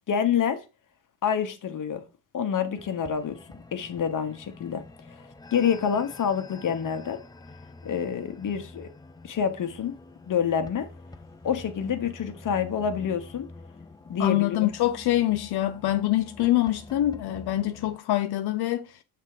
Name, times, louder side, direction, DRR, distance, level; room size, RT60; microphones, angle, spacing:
voice 1, 0.1-0.6 1.2-2.0 2.3-3.4 3.7-4.8 5.1-5.2 5.5-7.2 7.8-8.9 9.2-9.9 10.3-10.9 11.4-13.5 14.1-14.7, left 7 dB, 45° left, 1.0 m, -27 dB
sound 1, 2.8-18.0, left 3 dB, 10° left, 0.4 m, -47 dB
voice 2, 14.2-18.9, left 14 dB, 65° left, 0.6 m, -25 dB
6.5 x 3.4 x 4.8 m
cardioid pair, 105°, 42 cm